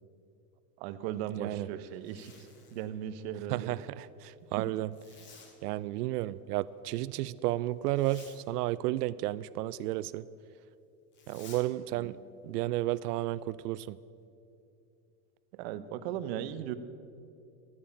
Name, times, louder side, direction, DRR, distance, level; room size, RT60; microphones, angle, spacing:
voice 1, 0.8-3.7 4.6-4.7 11.9-12.1 15.5-16.7, right 10 dB, 40° right, 12 dB, 0.8 m, -38 dB
Zipper (clothing), 1.9-2.9 4.9-5.6 7.9-8.4 11.1-11.7, left 4 dB, 25° left, 1.7 m, -54 dB
voice 2, 3.5-4.9 5.6-10.2 11.3-12.1 12.4-14.0, right 15 dB, 80° right, 17 dB, 0.5 m, -32 dB
14.5 x 9.5 x 8.6 m, 2.6 s
supercardioid pair, 165°, 46 cm